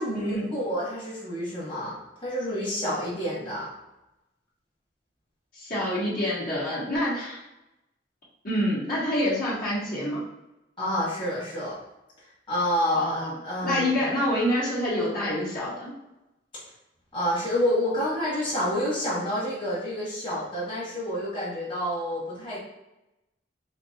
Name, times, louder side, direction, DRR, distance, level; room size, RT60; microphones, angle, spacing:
voice 1, 0.0-1.9 2.2-3.7 10.8-11.8 12.5-13.9 17.1-22.6, equal, 30° left, -8 dB, 1.5 m, -28 dB
voice 2, 5.5-7.4 8.4-10.2 12.9-13.3 13.6-15.9, left 1 dB, 50° left, -9 dB, 1.5 m, -27 dB
4.5 x 2.8 x 2.8 m, 0.94 s
head